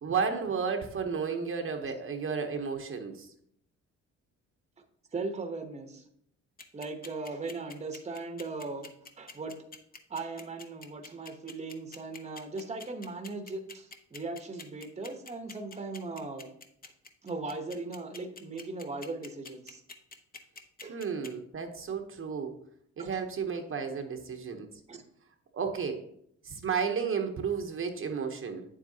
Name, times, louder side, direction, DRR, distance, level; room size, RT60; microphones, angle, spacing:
voice 1, 0.0-3.3 20.9-22.5 23.0-24.7 25.5-26.0 26.4-28.7, right 6 dB, 45° right, 5 dB, 0.9 m, -32 dB
voice 2, 5.1-6.0 6.7-8.9 9.2-9.5 10.1-16.5 17.2-19.8 20.8-21.0 23.0-23.2 24.9-25.0, right 3 dB, 20° right, 6 dB, 0.9 m, -38 dB
sound 1, 6.6-21.3, left 4 dB, 30° left, 0.8 m, -46 dB
8.5 x 7.4 x 2.8 m, 0.71 s
cardioid pair, 90°, 30 cm